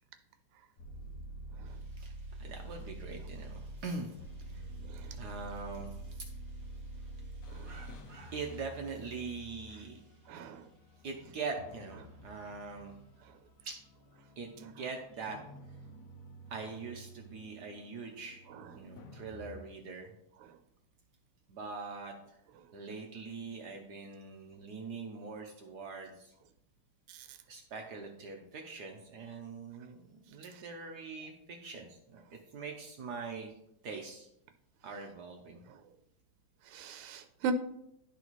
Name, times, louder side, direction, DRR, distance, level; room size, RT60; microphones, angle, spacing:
sound 1, 0.8-19.6, right 1 dB, 90° left, 0.7 m, -48 dB
voice 1, 1.7-10.1 11.0-13.0 13.6-13.8 14.4-15.4 16.5-18.5 18.7-20.1 21.5-22.4 22.7-26.3 27.5-32.2 32.5-33.5 33.8-34.3 34.8-35.6, right 4 dB, 65° right, 2 dB, 1.1 m, -43 dB
voice 2, 4.8-5.2 7.5-7.8 10.3-10.7 18.5-18.7 27.1-27.4 35.7-35.8 36.7-37.5, right 7 dB, 90° right, 8 dB, 1.5 m, -40 dB
11.5 x 4.0 x 3.0 m, 0.78 s
omnidirectional pair, 2.4 m